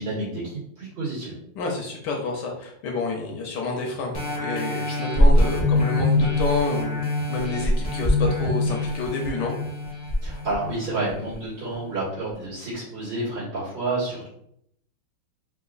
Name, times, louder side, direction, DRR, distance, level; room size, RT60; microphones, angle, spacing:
voice 1, 0.0-1.3 10.2-14.3, right 2 dB, 70° right, -9 dB, 2.4 m, -29 dB
voice 2, 1.6-9.5, left 3 dB, 70° left, 0 dB, 1.1 m, -29 dB
sound 1, 4.1-11.3 11.9-12.0, left 1 dB, 15° left, 0.7 m, -23 dB
4.6 x 2.3 x 2.4 m, 0.72 s
omnidirectional pair, 2.1 m